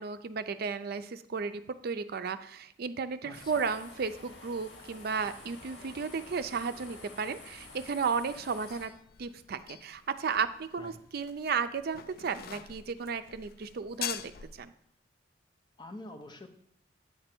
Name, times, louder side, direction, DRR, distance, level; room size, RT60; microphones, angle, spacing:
voice 1, 0.0-8.9 9.2-14.3 14.6-14.7, right 5 dB, 60° right, 11 dB, 0.4 m, -34 dB
sound 1, 3.3-8.9, left 2 dB, 80° left, 1.9 m, -50 dB
sound 2, 7.6-14.6, left 10 dB, 55° left, 0.4 m, -45 dB
voice 2, 15.8-16.5, left 1 dB, 25° left, 4 dB, 0.8 m, -46 dB
8.6 x 3.3 x 5.9 m, 0.68 s
head